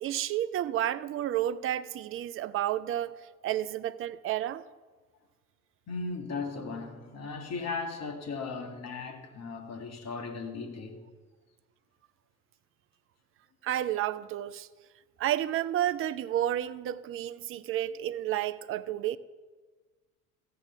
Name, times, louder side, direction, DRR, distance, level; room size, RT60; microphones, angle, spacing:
voice 1, 0.0-3.1 3.4-4.6 13.6-14.7 15.2-19.2, right 12 dB, 30° right, 0.5 m, -31 dB
voice 2, 5.9-11.0, left 4 dB, 35° left, 1.9 m, -37 dB
14.5 x 8.4 x 5.7 m
figure-of-eight pair, 70°, 43 cm